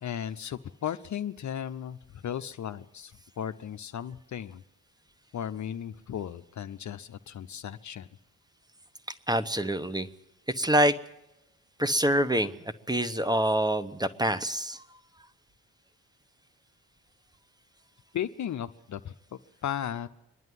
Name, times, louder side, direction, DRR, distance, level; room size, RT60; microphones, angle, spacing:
voice 1, 0.0-4.6 5.3-8.1 18.1-20.1, left 9 dB, 45° left, 10 dB, 0.8 m, -36 dB
voice 2, 9.3-10.1 10.6-10.9 11.8-12.5 12.9-14.8, right 1 dB, 10° right, 12 dB, 1.1 m, -25 dB
25.0 x 11.0 x 9.6 m, 0.92 s
hypercardioid pair, 40°, 40 cm